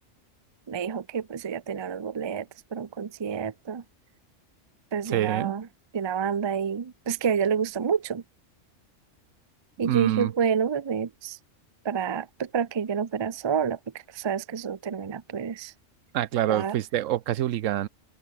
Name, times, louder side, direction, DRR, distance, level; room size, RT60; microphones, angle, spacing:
voice 1, 0.7-3.8 4.9-5.7 5.9-8.2 9.8-11.4 11.8-13.8 14.1-15.7 16.5-16.8, right 7 dB, 35° right, 0.4 m, -28 dB
voice 2, 5.1-5.5 9.8-10.3 16.1-17.9, right 12 dB, 80° right, 1.0 m, -26 dB
open air
omnidirectional pair, 1.3 m